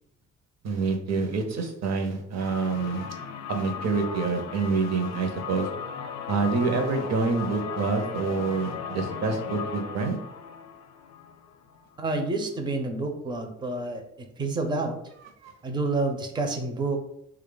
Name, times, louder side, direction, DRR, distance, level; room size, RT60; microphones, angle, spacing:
voice 1, 0.6-3.1 3.5-5.7 6.3-10.2 15.4-15.5, right 4 dB, 60° right, 5 dB, 0.7 m, -27 dB
sound 1, 2.4-12.1, left 7 dB, 65° left, 0.5 m, -37 dB
voice 2, 12.0-15.0 15.6-17.0, right 3 dB, 15° right, 4 dB, 0.5 m, -29 dB
3.1 x 2.3 x 3.8 m, 0.81 s
cardioid pair, 90°, 30 cm